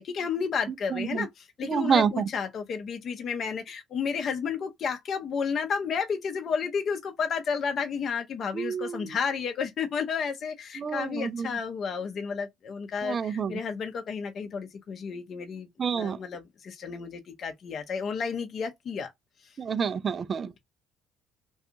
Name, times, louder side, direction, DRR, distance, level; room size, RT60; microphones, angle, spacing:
voice 1, 0.0-19.1, left 6 dB, 55° left, 0.6 m, -32 dB
voice 2, 1.6-2.2 8.5-9.1 10.8-11.5 13.0-13.5 15.8-16.2 19.6-20.6, right 6 dB, 45° right, 0.3 m, -28 dB
2.4 x 2.3 x 2.8 m
hypercardioid pair, 55°, 0 cm